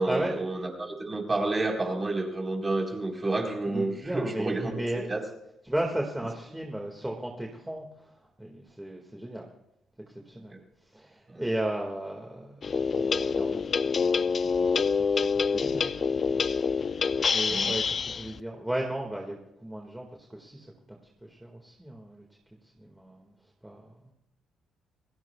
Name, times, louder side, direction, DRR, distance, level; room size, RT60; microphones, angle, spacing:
voice 1, 0.0-4.8 5.1-5.2 10.5-10.6 11.3-11.4 17.5-17.7, right 2 dB, 25° right, 1 dB, 4.2 m, -30 dB
voice 2, 3.7-5.2 5.6-7.9 8.4-9.5 10.3-10.5 10.9-14.3 14.6-22.2 22.8-23.3 23.6-23.8, right 1 dB, 10° right, 0 dB, 2.0 m, -35 dB
sound 1, 12.6-18.4, left 5 dB, 45° left, 0.5 m, -26 dB
27.5 x 17.5 x 2.4 m, 0.84 s
cardioid pair, 90°, 0 cm